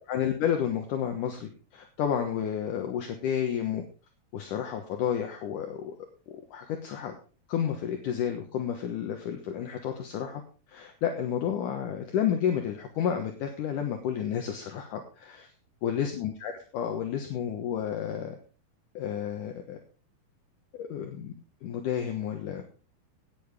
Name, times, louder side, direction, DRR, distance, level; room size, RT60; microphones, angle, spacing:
voice 1, 0.0-3.8 4.3-5.9 6.3-7.2 7.5-10.4 10.7-15.5 15.8-18.4 18.9-19.8 20.7-21.3 21.6-22.6, left 9 dB, 65° left, 4 dB, 2.6 m, -31 dB
18.0 x 8.7 x 3.6 m, 0.35 s
omnidirectional pair, 4.4 m